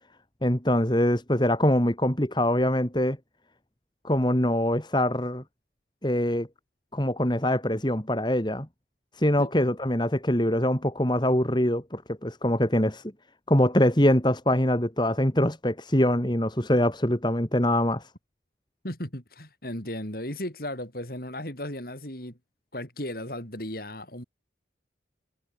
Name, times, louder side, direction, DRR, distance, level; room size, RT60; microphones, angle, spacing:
voice 1, 0.4-3.2 4.0-5.4 6.0-6.5 6.9-8.7 9.1-13.0 13.5-18.1, left 1 dB, 25° left, 3.0 m, -23 dB
voice 2, 18.8-22.4 22.7-24.2, left 1 dB, 50° left, 6.8 m, -35 dB
head